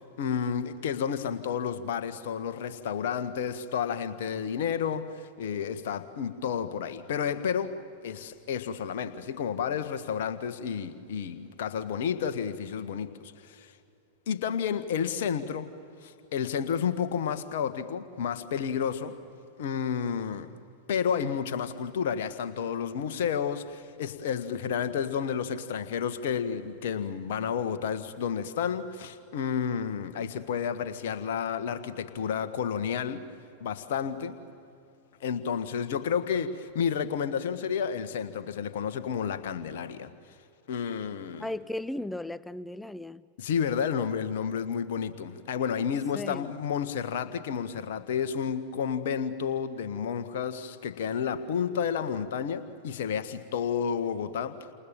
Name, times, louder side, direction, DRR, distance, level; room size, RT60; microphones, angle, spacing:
voice 1, 0.2-7.8 8.0-13.1 13.4-13.7 14.3-15.7 16.0-19.1 19.6-20.5 20.9-33.3 33.6-34.4 35.2-40.1 40.7-41.5 43.4-54.6, left 7 dB, 55° left, 1.6 m, -31 dB
voice 2, 41.4-43.2 46.1-46.5, left 1 dB, 5° left, 0.5 m, -36 dB
30.0 x 28.0 x 7.2 m
figure-of-eight pair, 90°, 0 cm